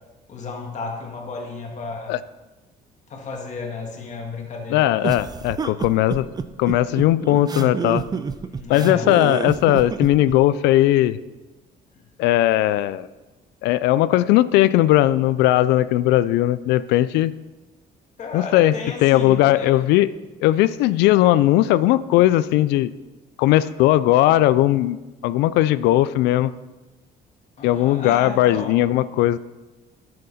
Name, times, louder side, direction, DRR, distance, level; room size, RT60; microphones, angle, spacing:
voice 1, 0.3-2.1 3.1-4.9 8.5-9.2 12.0-12.1 18.2-19.7 27.6-28.8, left 4 dB, 45° left, 1 dB, 1.9 m, -33 dB
voice 2, 4.7-6.3 6.6-8.0 8.7-11.2 12.2-13.1 13.6-17.3 18.3-18.7 19.0-20.1 20.4-22.9 23.4-25.0 25.2-26.5 27.6-29.4, left 14 dB, 90° left, 16 dB, 0.4 m, -18 dB
sound 1, 5.0-10.4, right 5 dB, 25° right, 0.4 m, -28 dB
10.5 x 6.7 x 4.1 m, 1.1 s
cardioid pair, 110°, 17 cm